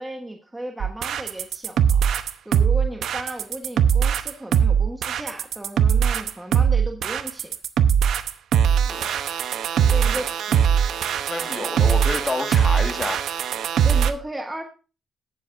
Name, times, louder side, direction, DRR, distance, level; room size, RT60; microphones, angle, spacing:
voice 1, 0.0-2.0 2.4-7.5 9.9-10.3 13.8-14.6, right 1 dB, 10° right, 3 dB, 1.2 m, -35 dB
sound 1, 0.8-14.1, right 8 dB, 70° right, 0.8 m, -20 dB
voice 2, 8.9-9.2 9.8-10.2 10.5-10.8 11.3-13.2, left 3 dB, 25° left, 6 dB, 1.7 m, -30 dB
18.5 x 7.3 x 2.6 m, 0.34 s
cardioid pair, 90°, 0 cm